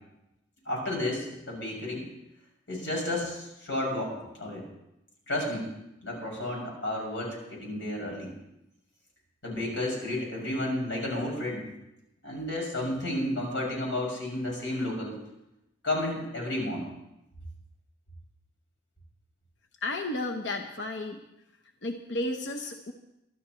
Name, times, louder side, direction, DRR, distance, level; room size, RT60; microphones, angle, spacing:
voice 1, 0.6-2.0 2.7-4.6 5.3-5.7 6.0-8.3 9.4-11.7 12.2-15.2 15.8-16.9, left 1 dB, 90° left, -2 dB, 6.5 m, -32 dB
voice 2, 19.8-21.2 21.8-22.9, left 2 dB, 70° left, 4 dB, 0.9 m, -33 dB
24.0 x 12.5 x 3.1 m, 0.88 s
head